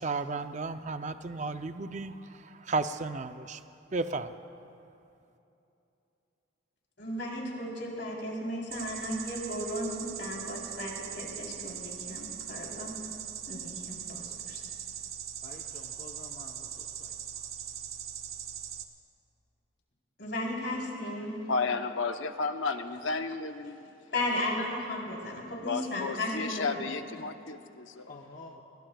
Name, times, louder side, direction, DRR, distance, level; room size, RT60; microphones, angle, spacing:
voice 1, 0.0-2.2 2.4-3.6 3.9-4.3, right 3 dB, 35° right, 9 dB, 0.5 m, -33 dB
voice 2, 7.0-12.9 13.5-14.6 20.2-21.3 24.1-26.8, left 1 dB, 60° left, -2 dB, 3.7 m, -35 dB
sound 1, 8.7-18.8, right 10 dB, 85° right, 1.0 m, -40 dB
voice 3, 15.4-17.2 28.1-28.6, left 2 dB, 40° left, 0 dB, 0.8 m, -49 dB
voice 4, 21.5-23.9 25.7-28.1, left 4 dB, 75° left, 7 dB, 0.8 m, -33 dB
26.5 x 20.5 x 2.3 m, 2.7 s
head